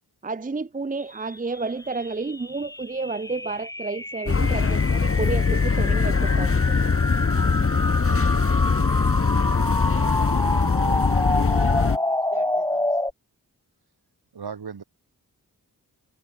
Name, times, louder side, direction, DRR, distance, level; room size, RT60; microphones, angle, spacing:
voice 1, 0.2-6.6, right 3 dB, 20° right, 0.6 m, -31 dB
sound 1, 1.2-13.1, left 1 dB, 10° left, 0.9 m, -28 dB
sound 2, 4.3-12.0, left 5 dB, 35° left, 1.0 m, -21 dB
voice 2, 8.0-8.5 8.8-9.0 9.3-9.5 14.3-14.8, right 6 dB, 85° right, 4.1 m, -39 dB
voice 3, 10.8-13.0, right 4 dB, 55° right, 5.4 m, -44 dB
cardioid pair, 50°, 37 cm